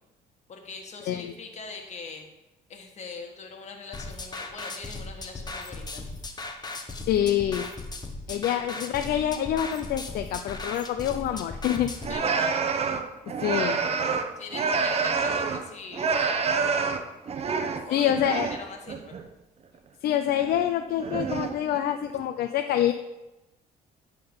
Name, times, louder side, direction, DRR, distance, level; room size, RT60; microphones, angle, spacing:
voice 1, 0.5-2.2 2.7-6.0 8.5-8.6 12.1-12.7 14.4-16.5 17.8-19.2, left 4 dB, 45° left, 3 dB, 1.7 m, -42 dB
sound 1, 3.9-12.1, left 3 dB, 25° left, 1.1 m, -37 dB
voice 2, 7.1-7.7 8.3-11.9 13.4-13.8 17.9-18.5 20.0-22.9, left 11 dB, 65° left, 7 dB, 0.5 m, -26 dB
sound 2, 12.0-15.7 15.9-18.6 18.9-19.2 20.3-20.7 21.0-21.8, right 5 dB, 35° right, 0.8 m, -27 dB
10.0 x 3.8 x 7.1 m, 1.0 s
cardioid pair, 110°, 17 cm